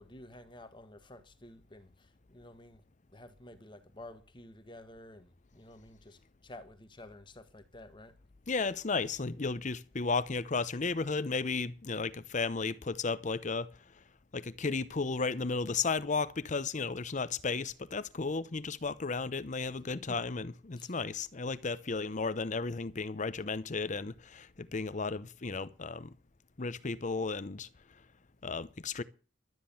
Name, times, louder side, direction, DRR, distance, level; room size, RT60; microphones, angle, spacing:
voice 1, 0.0-2.8 3.1-8.2 20.1-20.2 20.7-20.9, left 1 dB, 25° left, 1.4 m, -51 dB
voice 2, 8.5-13.7 14.3-26.1 26.6-27.7 28.4-29.0, left 4 dB, 40° left, 0.8 m, -34 dB
12.5 x 9.7 x 7.1 m
head